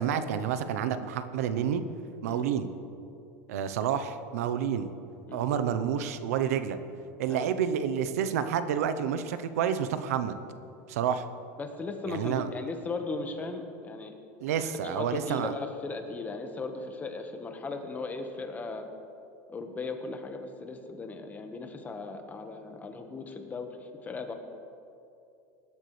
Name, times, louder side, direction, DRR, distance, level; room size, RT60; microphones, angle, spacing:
voice 1, 0.0-1.8 2.2-2.7 3.5-4.9 5.3-6.8 7.2-10.3 10.9-11.3 12.1-12.5 14.4-15.5, right 8 dB, 90° right, 11 dB, 0.8 m, -29 dB
voice 2, 11.6-14.1 14.6-18.9 19.5-24.3, left 3 dB, 20° left, 5 dB, 1.4 m, -37 dB
19.5 x 12.0 x 3.3 m, 2.6 s
supercardioid pair, 125°, 8 cm